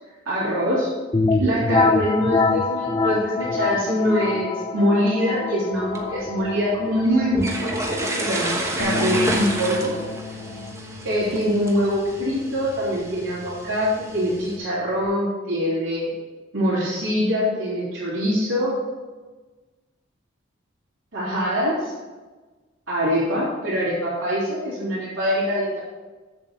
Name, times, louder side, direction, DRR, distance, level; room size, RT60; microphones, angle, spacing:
voice 1, 0.2-0.9 1.4-9.9 11.0-16.1 16.5-18.8 21.1-21.9 22.9-25.8, equal, 75° right, -9 dB, 3.4 m, -23 dB
sound 1, 1.1-10.7, left 4 dB, 20° left, 0.3 m, -26 dB
sound 2, 5.7-14.6, right 1 dB, 15° right, 1.1 m, -31 dB
Bass guitar, 8.8-15.0, left 3 dB, 70° left, 1.0 m, -35 dB
8.1 x 7.1 x 5.5 m, 1.3 s
head